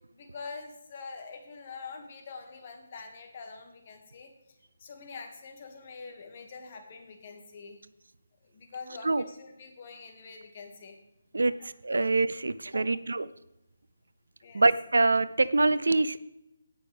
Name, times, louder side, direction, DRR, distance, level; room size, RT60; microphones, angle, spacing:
voice 1, 0.1-4.3 4.8-7.8 8.5-11.0 11.3-11.7 12.0-12.1 12.7-12.8 14.4-14.6, left 4 dB, 35° left, 4 dB, 2.0 m, -45 dB
voice 2, 11.8-13.3 14.5-16.2, right 3 dB, 85° right, 15 dB, 0.6 m, -24 dB
17.5 x 6.3 x 3.5 m, 0.87 s
hypercardioid pair, 165°, 0 cm